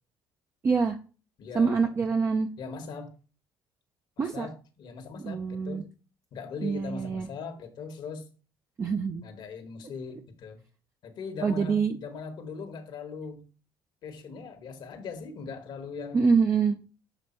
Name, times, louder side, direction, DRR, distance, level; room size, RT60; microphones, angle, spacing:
voice 1, 0.6-1.0 1.5-2.5 4.2-4.5 5.2-5.8 6.6-7.3 8.8-9.2 11.4-12.0 16.1-16.8, right 5 dB, 30° right, 0.5 m, -25 dB
voice 2, 1.4-2.1 2.6-3.1 4.2-5.9 6.3-8.2 9.2-10.6 11.0-13.5 14.0-16.3, left 5 dB, 60° left, 1.2 m, -40 dB
6.9 x 3.4 x 4.3 m
cardioid pair, 95°, 9 cm